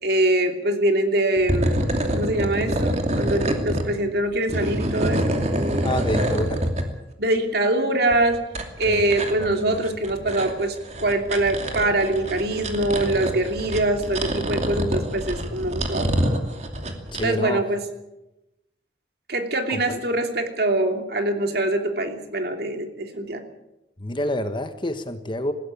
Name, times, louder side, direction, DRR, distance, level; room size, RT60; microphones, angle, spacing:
voice 1, 0.0-1.8 2.1-5.9 7.2-8.4 8.8-16.1 17.2-17.8 19.3-23.4, right 1 dB, 60° right, 5 dB, 2.9 m, -24 dB
sound 1, 1.4-3.9 4.3-6.8 8.1-17.3, right 1 dB, 40° right, 2.7 m, -26 dB
voice 2, 5.8-6.6 8.8-9.1 9.4-9.8 17.1-17.6 19.7-20.0 24.0-25.5, left 1 dB, 25° left, 9 dB, 1.3 m, -28 dB
20.5 x 16.0 x 8.4 m, 0.93 s
head